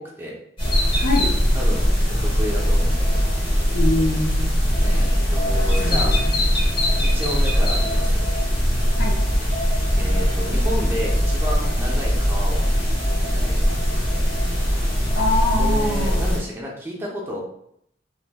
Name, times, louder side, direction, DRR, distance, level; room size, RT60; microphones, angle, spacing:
sound 1, 0.6-16.4, equal, 30° left, 1.1 m, -20 dB
voice 1, 1.0-1.4 3.7-4.6 5.8-6.3 9.0-9.2 15.2-16.3, left 2 dB, 50° left, 0 dB, 0.6 m, -24 dB
voice 2, 1.5-1.9 2.2-3.2 4.8-6.1 7.1-8.3 10.0-14.3 15.6-17.4, equal, 10° right, -4 dB, 0.7 m, -32 dB
3.0 x 3.0 x 2.3 m, 0.71 s
head